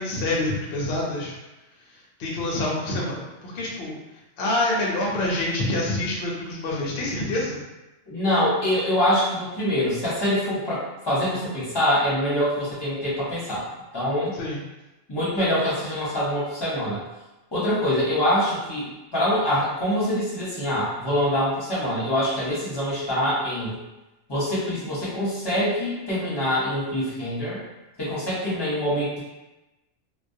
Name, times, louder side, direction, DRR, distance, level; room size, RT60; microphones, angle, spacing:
voice 1, 0.0-1.4 2.2-4.0 4.4-7.6 14.3-14.6, left 1 dB, 65° left, -3 dB, 0.7 m, -26 dB
voice 2, 8.1-13.6 13.9-14.3 15.1-17.0 17.5-18.9 19.1-23.8 24.3-27.6 28.0-29.2, equal, 25° left, -8 dB, 0.7 m, -24 dB
2.2 x 2.1 x 2.6 m, 1.0 s
omnidirectional pair, 1.3 m